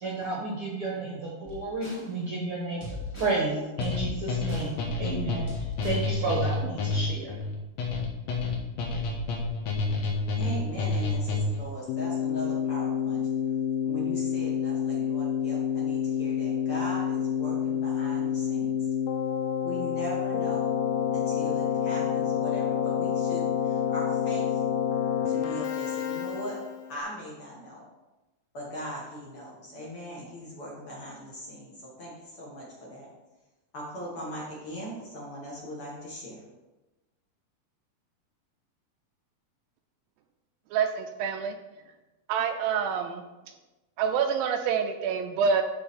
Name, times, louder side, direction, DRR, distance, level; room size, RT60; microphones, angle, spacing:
voice 1, 0.0-7.4, right 3 dB, 55° right, -3 dB, 1.7 m, -32 dB
sound 1, 1.5-2.1 2.8-3.4 3.8-4.7 5.5-6.1, left 3 dB, 20° left, 0.9 m, -38 dB
sound 2, 3.8-11.7, left 3 dB, 60° left, 2.1 m, -29 dB
voice 2, 10.4-13.2 13.8-18.8 19.6-20.7 21.1-24.6 25.2-26.6 26.9-27.9 28.5-33.1 33.7-36.4, equal, 45° left, -5 dB, 2.2 m, -39 dB
Keyboard (musical), 11.9-26.9, left 8 dB, 80° left, 2.2 m, -28 dB
voice 3, 40.7-41.6 42.3-43.2 44.0-45.6, right 6 dB, 80° right, 6 dB, 2.2 m, -27 dB
11.5 x 4.7 x 4.3 m, 1.1 s
omnidirectional pair, 4.2 m